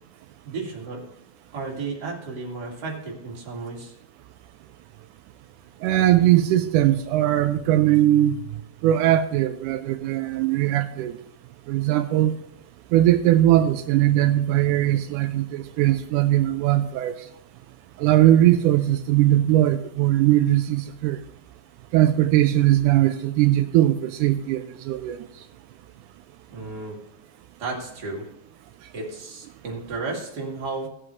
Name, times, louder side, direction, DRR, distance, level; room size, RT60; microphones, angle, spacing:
voice 1, 0.4-1.0 1.5-3.9 26.5-27.0 27.6-28.2 28.9-30.9, right 3 dB, 35° right, 2.5 m, -33 dB
voice 2, 5.8-8.4 8.8-11.2 11.7-12.3 12.9-17.2 18.0-21.2 21.9-25.2, right 13 dB, 85° right, 2.1 m, -20 dB
17.5 x 7.8 x 3.2 m
omnidirectional pair, 3.6 m